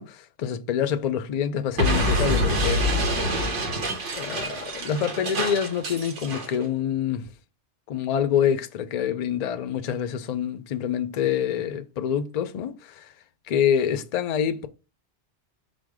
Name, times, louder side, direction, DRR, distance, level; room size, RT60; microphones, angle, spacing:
voice 1, 0.0-2.9 4.1-7.3 7.9-13.1 13.5-14.7, left 8 dB, 60° left, 0.4 m, -26 dB
Explosion, 1.8-6.5, equal, 90° right, 1.3 m, -26 dB
5.1 x 2.0 x 4.7 m
omnidirectional pair, 1.2 m